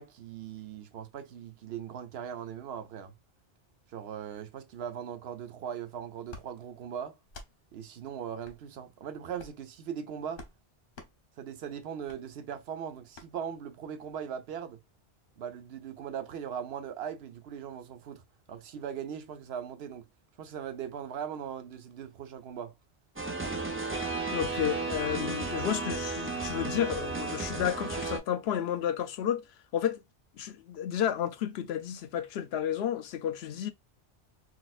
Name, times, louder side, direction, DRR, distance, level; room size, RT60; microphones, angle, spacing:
voice 1, 0.0-3.1 3.9-7.2 7.7-10.4 11.4-14.8 15.4-18.2 18.5-20.0 20.4-22.7, right 8 dB, 75° right, 0.9 m, -39 dB
sound 1, 6.3-6.5 7.3-7.5 8.4-8.6 9.3-9.6 10.3-10.6 10.9-11.1 12.1-12.2 13.1-13.3, left 3 dB, 65° left, 1.0 m, -47 dB
sound 2, 23.2-28.2, right 3 dB, 15° right, 0.5 m, -33 dB
voice 2, 24.3-29.4 29.7-30.0 30.3-33.7, left 10 dB, 85° left, 0.8 m, -31 dB
4.1 x 2.4 x 2.4 m
omnidirectional pair, 1.0 m